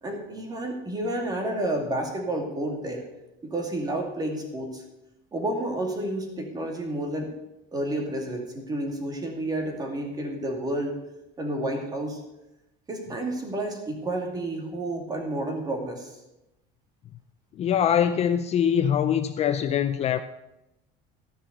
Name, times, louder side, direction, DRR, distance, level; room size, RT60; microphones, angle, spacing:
voice 1, 0.0-3.1 3.4-4.8 5.3-7.3 7.7-11.0 11.4-12.2 12.9-16.2, right 1 dB, 20° right, 3 dB, 2.4 m, -30 dB
voice 2, 17.6-20.2, left 9 dB, 35° left, 10 dB, 0.5 m, -23 dB
14.0 x 5.9 x 8.0 m, 0.93 s
cardioid pair, 155°, 20 cm